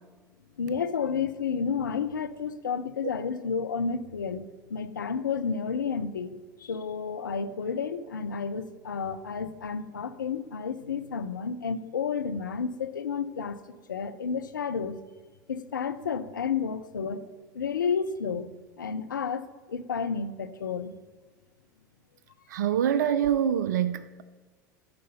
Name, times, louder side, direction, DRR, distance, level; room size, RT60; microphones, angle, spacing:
voice 1, 0.6-6.3 6.6-13.6 13.9-15.0 15.5-17.2 17.5-18.5 18.8-20.9, left 6 dB, 80° left, 0.5 m, -31 dB
voice 2, 22.5-24.2, right 9 dB, 65° right, 0.3 m, -25 dB
9.7 x 5.1 x 5.5 m
figure-of-eight pair, 80°, 10 cm